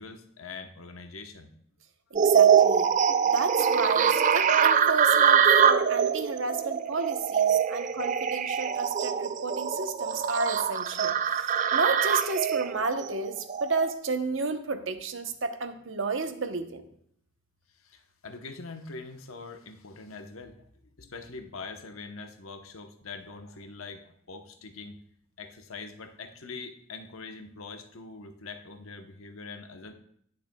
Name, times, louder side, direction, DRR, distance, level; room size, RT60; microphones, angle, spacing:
voice 1, 0.0-1.5 7.7-7.9 17.8-20.7 21.0-25.0 25.4-29.9, left 4 dB, 85° left, 6 dB, 0.9 m, -43 dB
voice 2, 2.1-2.9 3.3-16.8, right 4 dB, 65° right, 8 dB, 0.8 m, -32 dB
sound 1, 2.2-13.9, right 7 dB, 35° right, 0.3 m, -23 dB
18.5 x 6.6 x 2.2 m, 0.67 s
head